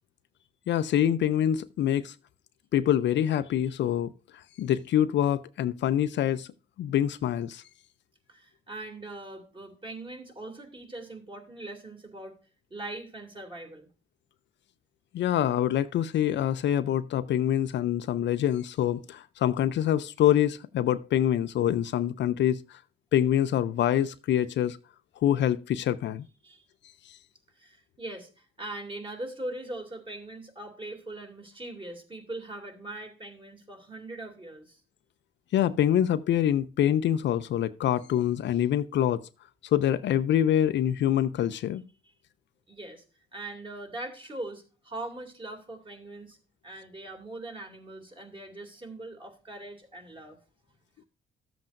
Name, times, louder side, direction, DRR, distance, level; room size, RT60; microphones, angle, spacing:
voice 1, 0.7-2.1 2.7-6.5 6.8-7.6 15.1-22.8 23.1-24.8 25.2-26.3 27.1-27.2 35.5-39.2 39.7-41.8, left 10 dB, 65° left, 0.5 m, -25 dB
voice 2, 8.3-12.4 12.7-13.9 26.4-26.6 27.5-34.8 42.0-42.1 42.7-43.0 43.3-46.4 46.6-50.4, right 2 dB, 25° right, 2.7 m, -41 dB
13.0 x 7.5 x 2.6 m
cardioid pair, 90°, 20 cm